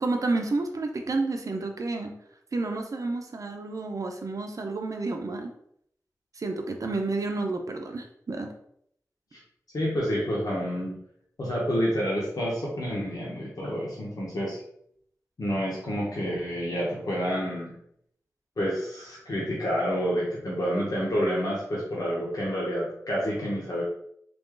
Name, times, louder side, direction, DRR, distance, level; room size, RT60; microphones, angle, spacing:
voice 1, 0.0-2.1 2.5-5.5 6.4-8.5, right 3 dB, 60° right, 3 dB, 0.6 m, -30 dB
voice 2, 9.7-10.9 11.4-14.6 15.4-17.7 18.6-23.8, equal, 75° left, -5 dB, 0.9 m, -28 dB
3.3 x 2.5 x 3.7 m, 0.70 s
cardioid pair, 50°, 6 cm